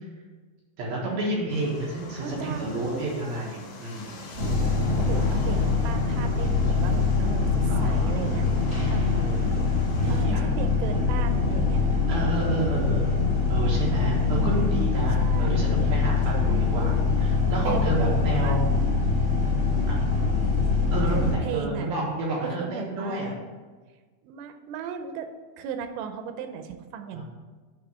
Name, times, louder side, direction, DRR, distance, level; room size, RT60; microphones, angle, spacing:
voice 1, 0.8-4.2 7.7-8.1 9.0-9.7 10.0-10.5 12.1-13.2 13.5-18.7 19.9-20.0 20.9-23.3 27.1-27.2, right 2 dB, 65° right, -4 dB, 2.7 m, -30 dB
sound 1, 1.5-10.3, left 3 dB, 65° left, 3.2 m, -45 dB
voice 2, 2.1-3.0 5.0-9.0 10.1-11.9 14.2-14.7 15.2-15.7 16.3-16.7 17.6-18.6 19.1-19.2 21.1-21.9 22.4-23.3 24.2-25.3 25.6-27.2, right 7 dB, 90° right, 7 dB, 3.0 m, -36 dB
sound 2, 4.3-21.3, left 4 dB, 35° right, 0.6 m, -24 dB
8.7 x 3.6 x 6.2 m, 1.4 s
omnidirectional pair, 5.2 m